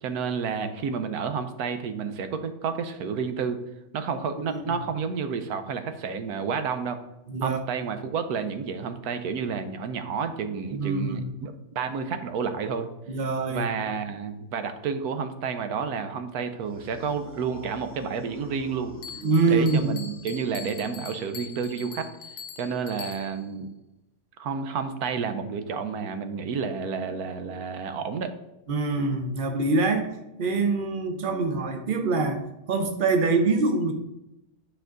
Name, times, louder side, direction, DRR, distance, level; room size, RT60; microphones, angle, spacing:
voice 1, 0.0-3.6 3.9-7.0 7.4-12.9 13.5-18.9 19.5-22.1 22.6-23.7 24.4-28.3, right 6 dB, 80° right, 9 dB, 1.2 m, -30 dB
voice 2, 7.3-7.6 10.7-11.3 13.1-13.7 19.2-19.9 28.7-30.1 30.4-32.4 32.7-33.9, right 3 dB, 40° right, 6 dB, 1.0 m, -24 dB
sound 1, 16.6-21.4, equal, 10° left, 2.1 m, -46 dB
Bell, 19.0-23.5, left 6 dB, 75° left, 1.0 m, -43 dB
9.9 x 4.5 x 3.8 m, 0.91 s
omnidirectional pair, 1.6 m